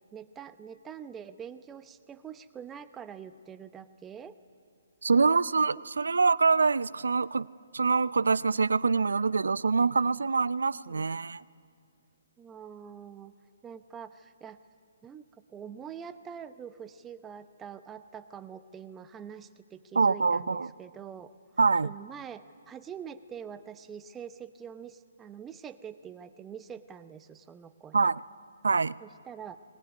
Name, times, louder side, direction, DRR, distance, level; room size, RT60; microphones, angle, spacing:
voice 1, 0.1-4.4 5.2-5.6 10.9-11.1 12.4-13.3 13.6-14.6 15.0-21.3 21.8-28.1 29.0-29.6, right 7 dB, 15° right, 11 dB, 0.8 m, -45 dB
voice 2, 5.0-7.5 7.7-11.4 20.0-20.7 21.6-21.9 27.9-28.2 28.6-29.0, right 4 dB, 85° right, 20 dB, 0.5 m, -25 dB
20.5 x 19.5 x 9.7 m, 2.4 s
hypercardioid pair, 145°, 0 cm